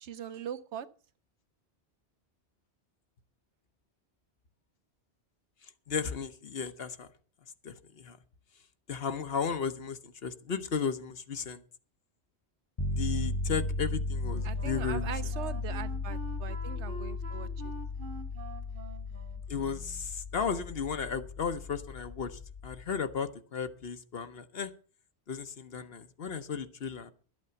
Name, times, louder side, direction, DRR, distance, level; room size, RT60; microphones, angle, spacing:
voice 1, 0.0-0.9 14.4-17.7, right 8 dB, 85° right, 14 dB, 1.1 m, -41 dB
voice 2, 5.6-7.1 7.6-8.2 8.9-11.6 12.9-15.1 19.5-24.7 25.3-27.1, left 6 dB, 65° left, 10 dB, 1.1 m, -35 dB
sound 1, 12.8-22.9, left 2 dB, 30° left, 0.7 m, -36 dB
Wind instrument woodwind instrument, 14.2-20.1, right 3 dB, 55° right, 1.7 m, -47 dB
12.0 x 8.5 x 6.9 m, 0.40 s
omnidirectional pair, 1.1 m